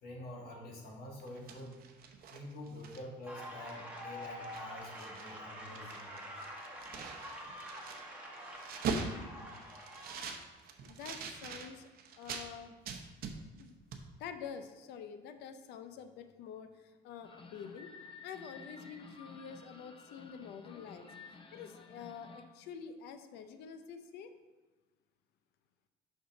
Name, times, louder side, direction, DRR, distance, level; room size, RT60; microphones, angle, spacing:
voice 1, 0.0-1.7 2.3-6.1, left 1 dB, 65° left, -1 dB, 1.6 m, -47 dB
sound 1, 1.2-3.3 3.7-3.8 4.1-5.4 5.7-12.5 12.9-13.7 13.9-14.1, right 5 dB, 60° right, 0.7 m, -42 dB
sound 2, 3.3-10.5, equal, 10° right, 1.4 m, -46 dB
voice 2, 10.8-11.9 12.2-12.8 13.6-13.8 14.2-17.9 18.2-21.1 21.5-24.3, left 7 dB, 85° left, 8 dB, 0.6 m, -47 dB
sound 3, 17.2-22.5, left 4 dB, 30° left, 0.7 m, -53 dB
5.4 x 3.8 x 5.9 m, 1.2 s
cardioid pair, 110°, 17 cm